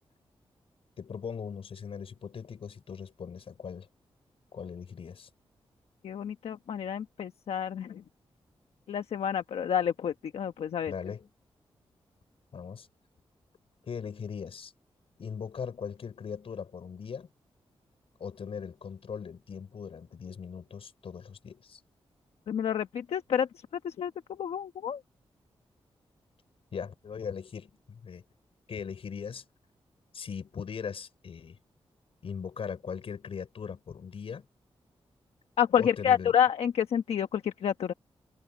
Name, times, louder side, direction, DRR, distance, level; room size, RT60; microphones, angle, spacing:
voice 1, 1.0-3.9 4.5-5.3 10.9-11.3 12.5-12.9 13.8-14.7 15.2-17.3 18.2-21.8 26.7-28.2 28.7-29.4 30.1-31.6 32.2-34.4 35.8-36.3, left 6 dB, 70° left, 4.8 m, -39 dB
voice 2, 6.0-8.0 8.9-10.9 22.5-25.0 35.6-37.9, left 8 dB, 90° left, 1.1 m, -29 dB
cardioid pair, 85°, 10 cm